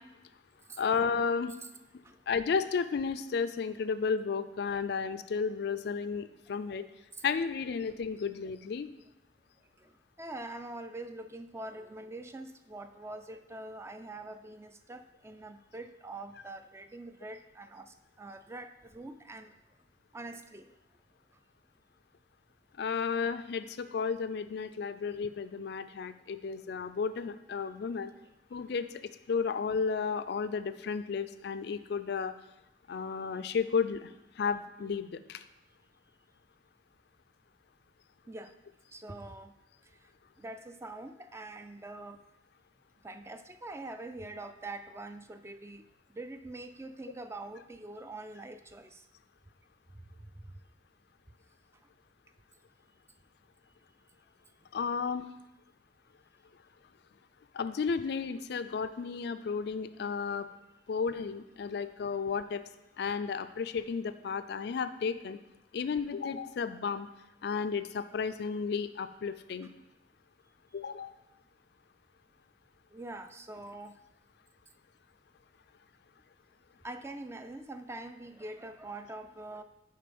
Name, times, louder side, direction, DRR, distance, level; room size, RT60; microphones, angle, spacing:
voice 1, 0.8-1.5 2.3-6.9 7.2-8.9 22.8-28.1 28.5-28.9 29.3-32.3 32.9-34.1 34.4-35.4 54.7-55.2 57.5-60.5 60.9-62.6 63.0-65.4 65.7-67.1 67.4-69.7 70.7-71.1, left 5 dB, 65° left, 12 dB, 0.4 m, -33 dB
voice 2, 10.2-19.5 20.1-20.7 38.3-38.5 38.9-39.5 40.4-42.2 43.0-45.8 46.1-49.0 50.4-50.5 72.9-74.0 76.8-79.6, right 2 dB, 15° right, 9 dB, 0.3 m, -44 dB
6.6 x 4.6 x 5.2 m, 0.93 s
head